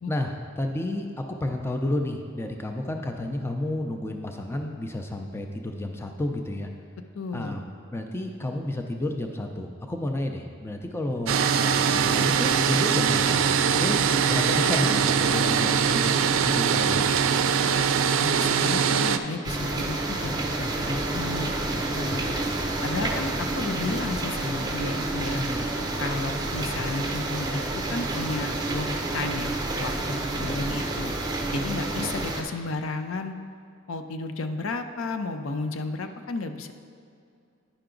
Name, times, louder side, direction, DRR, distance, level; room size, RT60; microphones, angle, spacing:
voice 1, 0.1-1.0 1.4-6.7 7.3-17.1 25.3-25.7, left 1 dB, 10° left, 3 dB, 0.4 m, -31 dB
voice 2, 7.2-7.5 18.2-21.5 22.0-22.4 22.8-25.4 26.0-27.6 27.9-31.1 31.5-33.3 33.9-36.7, left 3 dB, 80° left, 8 dB, 0.5 m, -33 dB
sound 1, 11.3-19.2, right 7 dB, 75° right, 0.4 m, -22 dB
sound 2, 19.4-32.4, right 2 dB, 20° right, 0.7 m, -29 dB
9.9 x 5.8 x 3.8 m, 2.4 s
head